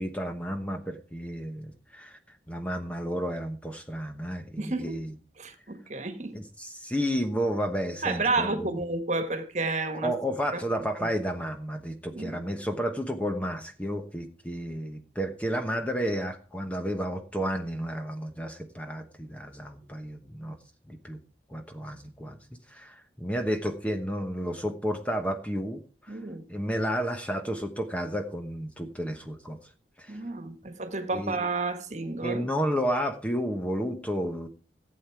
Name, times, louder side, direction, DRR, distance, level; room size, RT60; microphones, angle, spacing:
voice 1, 0.0-2.2 2.5-5.1 6.3-8.7 9.9-20.6 20.9-21.2 21.5-22.4 22.7-26.2 26.5-29.6 30.0-30.2 31.1-31.4 32.2-34.5, equal, 10° left, 1.0 m, -32 dB
voice 2, 4.6-5.0 5.4-6.4 8.0-10.1 11.0-11.1 12.1-12.4 26.1-26.4 30.1-32.4, right 3 dB, 40° right, 1.6 m, -31 dB
15.0 x 8.4 x 4.6 m
head